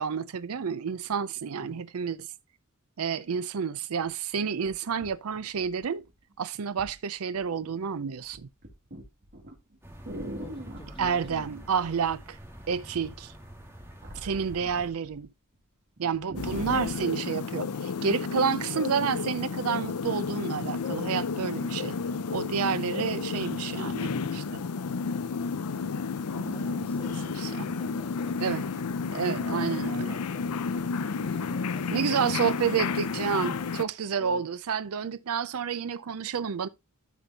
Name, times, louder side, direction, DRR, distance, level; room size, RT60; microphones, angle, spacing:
voice 1, 0.0-2.3 3.0-6.0 6.4-8.5 11.0-12.4 12.7-13.3 14.1-15.3 16.0-22.0 22.3-24.6 26.3-26.8 27.4-27.7 28.4-28.7 29.1-30.2 31.9-36.7, right 6 dB, 70° right, 0.5 m, -30 dB
sound 1, 4.0-4.1 4.6-6.1 6.8-7.0 7.3-7.8 8.1-11.0 12.1-12.6 12.9-15.2 15.5-15.6 16.0-17.1 17.7-17.8, right 1 dB, 50° right, 2.4 m, -42 dB
sound 2, 9.8-14.9, equal, 10° right, 1.9 m, -47 dB
voice 2, 10.4-11.9 14.6-14.9 26.5-27.2 27.6-28.5 31.2-32.5 34.2-34.4, left 1 dB, 25° left, 1.5 m, -47 dB
sound 3, 16.4-33.8, left 5 dB, 90° left, 0.6 m, -31 dB
13.0 x 5.3 x 2.8 m
head